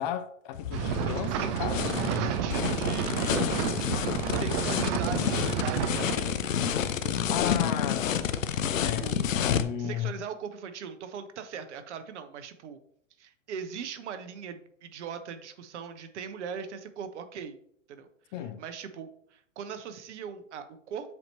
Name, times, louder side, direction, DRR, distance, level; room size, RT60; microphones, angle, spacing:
voice 1, 0.0-2.5 7.3-8.3 8.8-10.1 18.3-18.6, left 10 dB, 35° left, 0.5 m, -34 dB
sound 1, 0.5-9.6, left 8 dB, 80° left, 0.6 m, -29 dB
sound 2, 0.7-6.1, right 9 dB, 25° right, 0.3 m, -30 dB
voice 2, 2.1-7.2 9.0-9.2 9.8-12.8 13.2-17.6 17.9-18.1 18.6-21.1, right 7 dB, 60° right, 1.0 m, -40 dB
7.6 x 2.9 x 4.3 m
hypercardioid pair, 110°, 38 cm